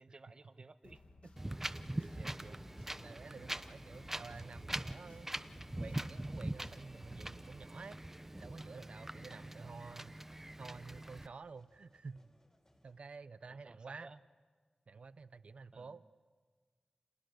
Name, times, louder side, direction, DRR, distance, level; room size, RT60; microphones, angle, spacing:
voice 1, 0.0-1.3 9.3-9.8 13.4-14.2 15.7-16.1, right 3 dB, 45° right, 10 dB, 1.3 m, -57 dB
sound 1, 0.8-7.1, left 2 dB, 75° left, 2.1 m, -60 dB
sound 2, 1.4-13.0, left 1 dB, 30° left, 4.6 m, -71 dB
Wind, 1.4-11.3, right 1 dB, 15° right, 0.8 m, -43 dB
voice 2, 1.8-2.6 3.0-5.3 5.8-8.0 8.4-10.1 10.6-12.3 12.8-14.1 14.9-16.0, right 4 dB, 75° right, 14 dB, 0.8 m, -51 dB
30.0 x 29.0 x 6.5 m, 1.5 s
wide cardioid pair, 100°, 2 cm